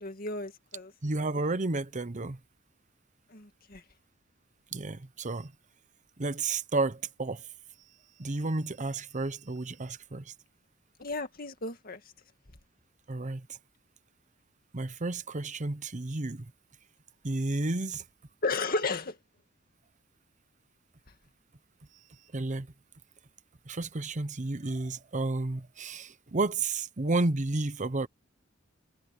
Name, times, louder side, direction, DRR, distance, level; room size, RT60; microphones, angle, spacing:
voice 1, 0.0-0.9 3.3-3.8 11.0-12.0 18.4-19.2, left 3 dB, 45° left, 2.3 m, -33 dB
voice 2, 1.0-2.4 4.7-5.5 6.2-7.4 8.2-10.3 13.1-13.5 14.7-16.5 17.2-18.0 22.3-22.7 23.7-28.1, right 2 dB, 40° right, 0.9 m, -31 dB
head